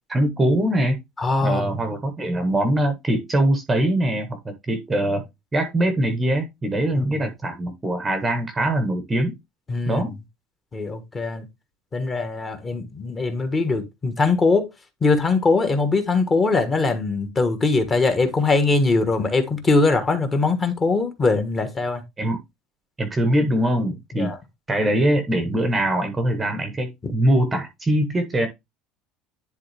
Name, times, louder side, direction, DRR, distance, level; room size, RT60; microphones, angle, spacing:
voice 1, 0.1-1.0 1.4-5.2 5.5-9.4 9.9-10.2 22.2-22.4 23.0-24.3 24.7-28.5, right 1 dB, 10° right, 1.0 m, -22 dB
voice 2, 1.2-1.7 7.1-7.2 9.7-10.0 10.7-11.5 11.9-14.7 15.0-22.0 24.2-24.4 27.0-27.1, left 3 dB, 15° left, 1.3 m, -21 dB
10.5 x 3.5 x 3.4 m
cardioid pair, 175°, 0 cm